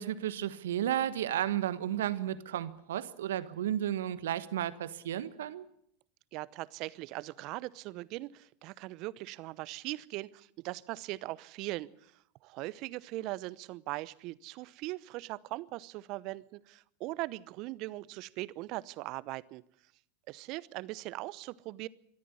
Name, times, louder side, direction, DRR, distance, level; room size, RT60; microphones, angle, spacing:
voice 1, 0.0-5.6, right 11 dB, 75° right, 15 dB, 1.4 m, -33 dB
voice 2, 6.3-12.1 12.4-19.6 20.3-21.9, right 19 dB, 50° right, 20 dB, 0.8 m, -40 dB
23.5 x 14.0 x 9.7 m, 0.67 s
hypercardioid pair, 95°, 0 cm